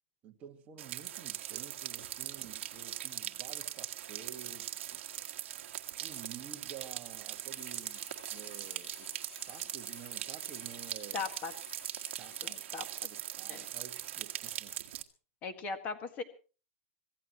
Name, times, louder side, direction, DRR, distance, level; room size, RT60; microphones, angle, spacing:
voice 1, 0.2-5.0 6.0-8.0 8.3-9.2 9.5-11.3 12.2-12.6 13.1-14.7, right 8 dB, 20° right, 1.8 m, -51 dB
sound 1, 0.8-15.0, right 12 dB, 55° right, 1.7 m, -41 dB
sound 2, 7.5-12.6, left 8 dB, 70° left, 2.4 m, -55 dB
voice 2, 11.1-11.5 12.4-13.1 13.5-13.7 15.4-16.2, left 4 dB, 20° left, 1.9 m, -39 dB
25.0 x 16.5 x 3.1 m
supercardioid pair, 175°, 8 cm